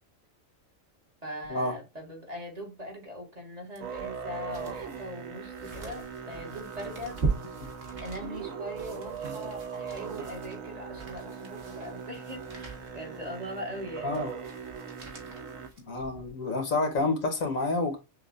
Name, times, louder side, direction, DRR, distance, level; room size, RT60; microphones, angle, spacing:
voice 1, 1.2-7.2 8.0-14.2, equal, 30° right, 1.5 m, -41 dB
sound 1, 3.8-16.4 16.9-17.0, right 4 dB, 50° right, 1.4 m, -40 dB
Musical instrument, 3.8-15.7, right 6 dB, 85° right, 1.2 m, -40 dB
voice 2, 15.9-18.0, left 2 dB, 85° left, 1.7 m, -29 dB
6.6 x 2.5 x 2.4 m
omnidirectional pair, 1.4 m